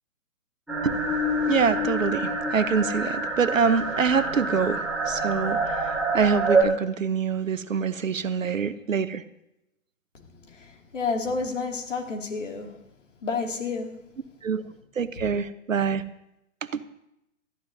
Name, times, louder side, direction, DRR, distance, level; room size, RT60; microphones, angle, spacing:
sound 1, 0.7-6.6, right 2 dB, ahead, 4.2 m, -26 dB
voice 1, 1.5-9.2 14.4-14.6 15.0-16.0 16.7-16.8, right 6 dB, 70° right, 13 dB, 1.0 m, -25 dB
voice 2, 10.9-12.8 13.2-14.0, left 4 dB, 60° left, 2 dB, 2.5 m, -30 dB
20.0 x 13.5 x 2.7 m, 0.85 s
figure-of-eight pair, 125°, 41 cm